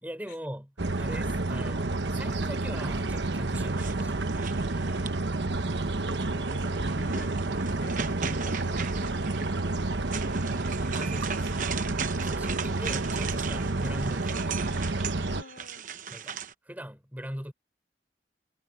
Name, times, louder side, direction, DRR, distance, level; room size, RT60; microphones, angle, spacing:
voice 1, 0.0-0.7 1.0-4.2 10.9-11.9 12.2-14.7 16.1-17.5, equal, 10° right, 3.7 m, -41 dB
sound 1, 0.8-15.4, right 2 dB, 90° right, 1.1 m, -30 dB
sound 2, 3.6-5.4 6.1-16.5, right 6 dB, 45° right, 0.9 m, -38 dB
voice 2, 6.1-9.9 15.3-15.9, left 2 dB, 80° left, 3.7 m, -49 dB
head